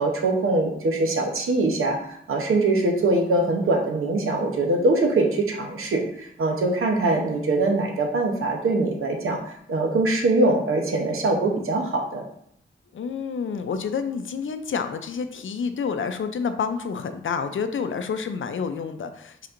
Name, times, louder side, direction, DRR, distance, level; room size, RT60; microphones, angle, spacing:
voice 1, 0.0-12.2, right 2 dB, 85° right, 2 dB, 0.8 m, -23 dB
voice 2, 12.9-19.5, left 6 dB, 70° left, 9 dB, 0.5 m, -29 dB
4.4 x 4.1 x 2.5 m, 0.70 s
cardioid pair, 45°, 21 cm